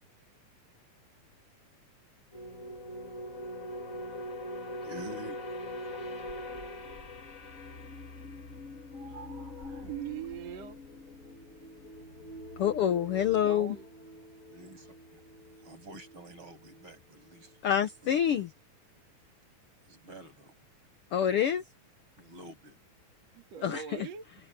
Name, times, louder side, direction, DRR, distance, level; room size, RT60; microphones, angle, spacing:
sound 1, 2.3-17.0 17.2-17.5, left 1 dB, 35° left, 1.6 m, -43 dB
voice 1, 4.6-5.4 5.9-6.0 8.9-9.9 14.5-15.2 15.6-18.4 19.9-20.5 22.2-22.8, right 1 dB, 35° right, 8.3 m, -49 dB
voice 2, 9.8-10.8 13.4-13.9 23.3-24.3, right 9 dB, 55° right, 2.8 m, -41 dB
voice 3, 12.6-13.7 17.6-18.5 21.1-21.6 23.6-23.8, left 9 dB, 85° left, 1.2 m, -26 dB
omnidirectional pair, 3.8 m